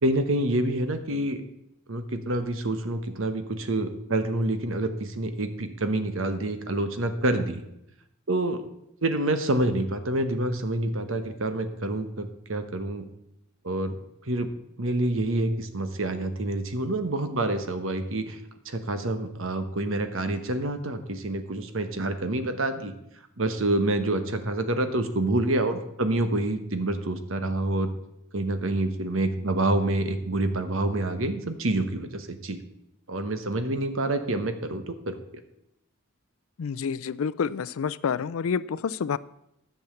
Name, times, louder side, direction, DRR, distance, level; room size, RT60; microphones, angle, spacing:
voice 1, 0.0-1.4 1.9-7.6 8.3-8.6 9.0-13.0 13.6-14.0 14.3-14.5 14.8-18.4 18.6-22.9 23.4-27.9 28.3-32.6 33.1-35.2, right 1 dB, 65° right, 9 dB, 1.2 m, -27 dB
voice 2, 36.6-39.2, left 6 dB, 75° left, 18 dB, 0.4 m, -28 dB
10.5 x 7.2 x 7.1 m, 0.82 s
head